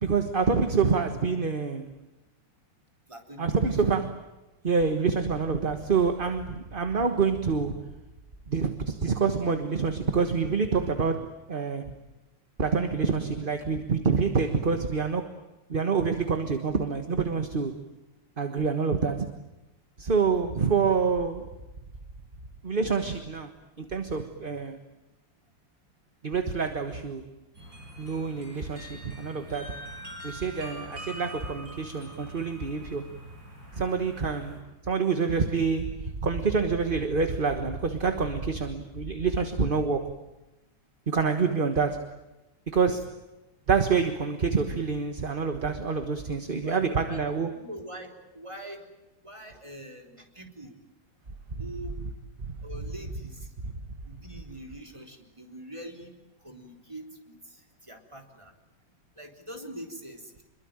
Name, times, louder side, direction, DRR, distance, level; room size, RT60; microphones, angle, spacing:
voice 1, 0.0-1.9 3.4-4.1 4.6-7.8 8.5-11.8 12.6-15.3 15.7-17.7 18.4-19.3 20.0-21.5 22.6-23.5 23.8-24.8 26.2-27.2 28.0-29.8 30.2-33.1 33.8-34.6 34.9-40.1 41.1-42.1 42.7-43.1 43.7-47.5, right 5 dB, 30° right, 7 dB, 1.4 m, -27 dB
voice 2, 3.1-4.0 18.4-18.7 28.6-28.7 41.4-41.5 46.6-47.2 47.5-48.9 49.2-50.7 51.6-51.9 52.6-53.5 54.0-56.1 56.4-58.5 59.2-60.4, right 1 dB, 15° right, 3 dB, 3.8 m, -43 dB
sound 1, 27.5-34.6, right 1 dB, 50° right, 8.0 m, -44 dB
27.0 x 22.5 x 8.9 m, 0.97 s
omnidirectional pair, 2.0 m